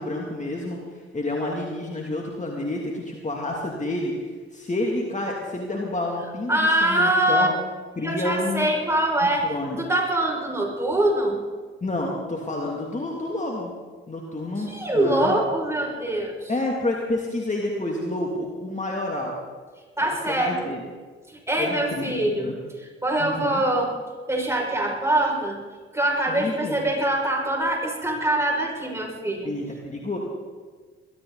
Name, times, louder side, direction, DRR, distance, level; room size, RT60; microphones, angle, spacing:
voice 1, 0.0-7.5 8.0-8.7 9.4-9.8 11.8-13.7 14.1-15.4 16.5-19.3 20.0-20.8 21.6-22.5 23.2-23.6 26.3-26.8 29.4-30.2, left 2 dB, 25° left, -1 dB, 2.8 m, -29 dB
voice 2, 6.5-7.5 8.0-11.4 14.7-16.5 20.0-20.7 21.3-23.9 24.3-25.6 25.9-29.5, right 1 dB, 10° right, -1 dB, 6.3 m, -24 dB
22.0 x 13.5 x 4.1 m, 1.5 s
hypercardioid pair, 45°, 30 cm